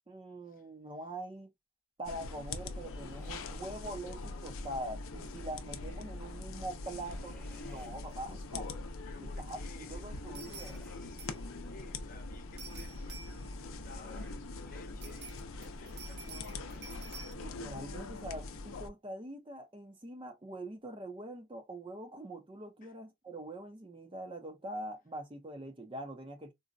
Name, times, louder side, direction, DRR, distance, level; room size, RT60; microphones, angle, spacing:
voice 1, 0.1-1.5 2.0-7.4 7.6-8.8 9.2-9.6 9.9-10.7 17.3-26.5, right 1 dB, 25° right, 0.6 m, -43 dB
sound 1, 2.0-18.9, left 3 dB, 85° left, 0.5 m, -43 dB
sound 2, 3.1-3.6 4.1-4.6 6.6-7.9 9.6-11.1 13.1-14.4, equal, 10° left, 0.9 m, -60 dB
sound 3, 8.1-8.2 8.5-8.6 10.3-10.9 11.2-11.5 12.6-13.6 15.0-17.3, right 5 dB, 55° right, 0.7 m, -50 dB
voice 2, 9.1-10.2 10.5-16.9 22.8-22.9, left 3 dB, 40° left, 0.8 m, -56 dB
3.9 x 2.1 x 2.4 m
head